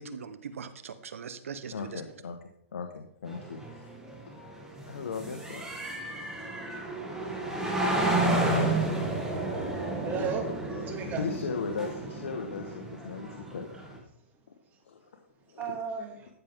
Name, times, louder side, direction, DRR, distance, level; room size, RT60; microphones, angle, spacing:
voice 1, 0.0-2.0, right 6 dB, 80° right, 12 dB, 1.1 m, -41 dB
voice 2, 1.7-2.4 2.7-3.9 4.9-5.8 8.4-8.8 11.2-13.7 14.5-14.6 14.8-15.2 15.5-15.8, left 5 dB, 75° left, 4 dB, 1.4 m, -37 dB
sound 1, 3.3-14.0, right 2 dB, 5° right, 2.5 m, -31 dB
voice 3, 9.7-11.3 15.5-16.3, right 6 dB, 25° right, 3 dB, 2.3 m, -35 dB
13.5 x 7.3 x 3.7 m, 0.74 s
hypercardioid pair, 135°, 7 cm